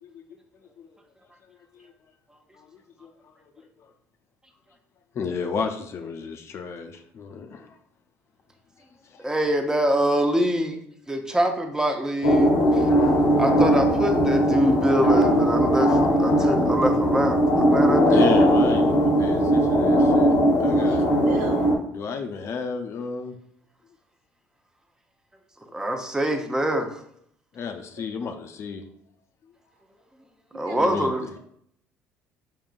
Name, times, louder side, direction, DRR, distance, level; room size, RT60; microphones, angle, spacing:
voice 1, 5.1-7.7 9.1-9.2 18.1-20.3 20.6-21.0 21.9-23.3 27.5-28.8 30.7-31.1, left 5 dB, 50° left, 5 dB, 0.5 m, -32 dB
voice 2, 9.2-10.8 11.1-12.9 13.4-18.3 25.7-26.9 30.5-31.2, equal, 10° right, 5 dB, 0.6 m, -24 dB
sound 1, 12.2-21.8, equal, 85° left, 0.7 m, -19 dB
voice 3, 20.7-21.7 30.5-30.8, right 4 dB, 85° right, 3 dB, 0.7 m, -36 dB
4.4 x 3.7 x 2.4 m, 0.70 s
supercardioid pair, 80°, 6 cm